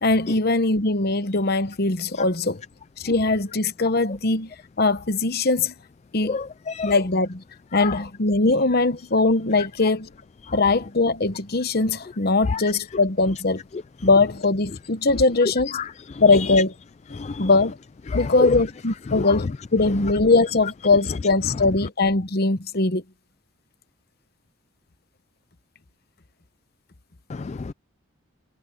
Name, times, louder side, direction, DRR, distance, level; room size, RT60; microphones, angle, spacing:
voice 1, 0.0-2.6 3.0-4.5 4.8-5.7 6.1-6.4 6.8-7.4 7.7-10.1 10.5-13.6 14.0-15.8 16.2-16.7 17.4-17.8 18.1-23.0, left 3 dB, 50° left, 1.0 m, -21 dB
voice 2, 6.2-6.9 7.7-8.0 10.5-10.6 12.5-12.7 15.4-16.6 17.1-17.5 18.1-18.6 19.1-19.4 27.3-27.7, left 5 dB, 30° left, 0.3 m, -28 dB
head